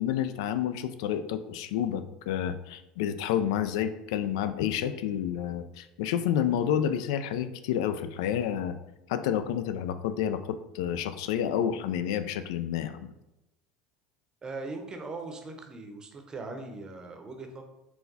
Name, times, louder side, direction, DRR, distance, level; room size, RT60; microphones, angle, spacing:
voice 1, 0.0-8.7 9.1-13.1, left 9 dB, 80° left, 10 dB, 0.3 m, -29 dB
voice 2, 14.4-17.6, right 3 dB, 25° right, 4 dB, 0.7 m, -40 dB
4.5 x 2.2 x 3.9 m, 0.94 s
supercardioid pair, 100°, 3 cm